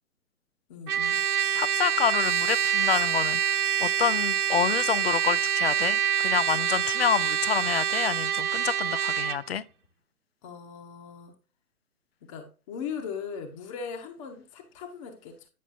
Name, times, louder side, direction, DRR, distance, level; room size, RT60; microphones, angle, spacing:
voice 1, 0.7-1.2 10.4-11.3 12.2-15.3, left 6 dB, 20° left, 0.9 m, -39 dB
Trumpet, 0.9-9.4, right 9 dB, 80° right, 0.5 m, -26 dB
voice 2, 1.5-9.6, left 8 dB, 45° left, 0.4 m, -28 dB
9.3 x 5.9 x 2.6 m
figure-of-eight pair, 125°, 45 cm